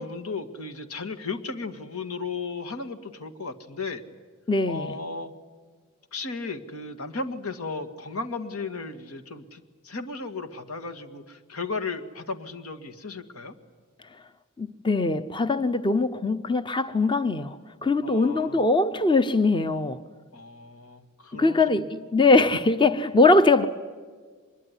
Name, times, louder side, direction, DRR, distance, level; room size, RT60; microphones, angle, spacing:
voice 1, 0.0-4.0 4.7-5.3 6.1-13.5 18.0-18.6 20.3-21.9, left 3 dB, 85° left, 2.0 m, -35 dB
voice 2, 4.5-5.0 14.6-17.6 17.8-20.0 21.3-23.7, left 3 dB, 20° left, 0.7 m, -21 dB
24.5 x 22.0 x 9.9 m
head